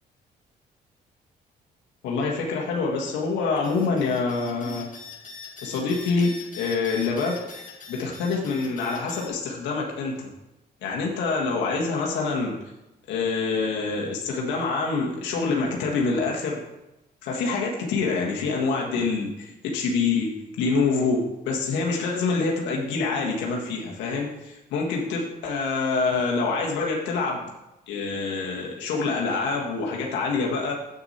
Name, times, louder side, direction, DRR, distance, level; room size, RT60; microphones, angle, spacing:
voice 1, 2.0-4.9 5.6-7.4 7.9-10.3 10.8-12.5 13.1-16.6 17.2-20.3 20.6-27.4 27.9-30.7, left 4 dB, 90° left, -2 dB, 1.6 m, -26 dB
sound 1, 3.5-9.3, left 5 dB, 45° left, 1.8 m, -42 dB
8.1 x 6.9 x 4.2 m, 0.96 s
cardioid pair, 80°, 18 cm